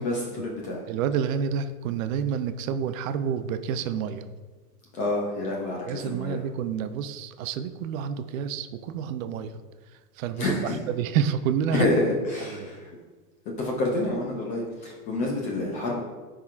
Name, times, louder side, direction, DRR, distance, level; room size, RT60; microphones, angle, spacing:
voice 1, 0.0-0.8 4.9-6.4 10.4-10.8 11.7-12.9 13.5-16.0, left 2 dB, 20° left, -1 dB, 0.3 m, -28 dB
voice 2, 0.9-4.3 5.9-9.6 9.9-11.9 12.4-12.7, right 8 dB, 60° right, 10 dB, 0.6 m, -29 dB
10.5 x 3.7 x 2.4 m, 1.3 s
hypercardioid pair, 125°, 47 cm